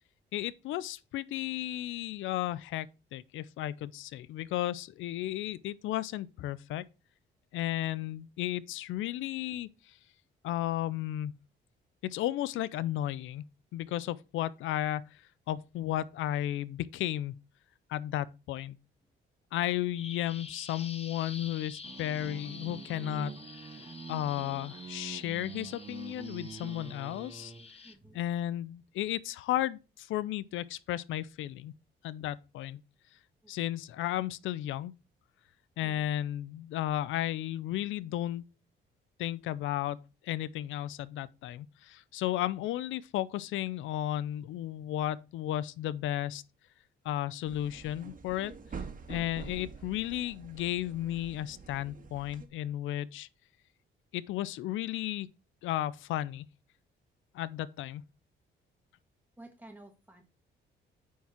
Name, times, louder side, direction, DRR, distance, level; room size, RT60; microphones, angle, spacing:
voice 1, 0.3-6.8 7.5-10.0 10.4-11.4 12.0-13.5 13.7-17.4 17.9-18.8 19.5-23.4 24.1-27.5 28.1-31.7 32.0-32.8 33.5-34.9 35.8-38.4 39.2-40.0 40.2-46.4 47.0-48.5 49.1-53.3 54.1-55.3 55.6-56.5 57.3-58.0, left 13 dB, 80° left, 0.5 m, -34 dB
Bird vocalization bird call bird song, 19.9-27.9, left 4 dB, 30° left, 1.0 m, -49 dB
sound 1, 21.8-27.7, right 5 dB, 25° right, 0.5 m, -45 dB
voice 2, 27.8-28.2 33.4-33.5 35.8-36.1 59.4-60.2, right 1 dB, 10° right, 1.4 m, -52 dB
sound 2, 47.4-52.5, right 5 dB, 40° right, 1.8 m, -46 dB
9.2 x 4.7 x 4.3 m
cardioid pair, 90°, 20 cm